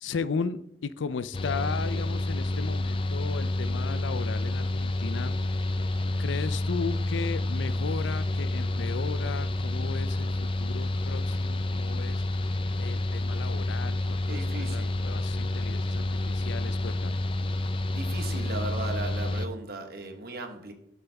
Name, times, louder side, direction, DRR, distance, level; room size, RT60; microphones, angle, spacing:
voice 1, 0.0-5.3 6.2-12.2 12.8-17.2, left 5 dB, 85° left, 15 dB, 0.5 m, -36 dB
Mechanical fan, 1.3-19.5, left 2 dB, 30° left, 0.4 m, -29 dB
voice 2, 14.3-15.0 17.9-20.7, right 3 dB, 55° right, 5 dB, 1.3 m, -37 dB
11.0 x 7.2 x 3.5 m, 0.78 s
head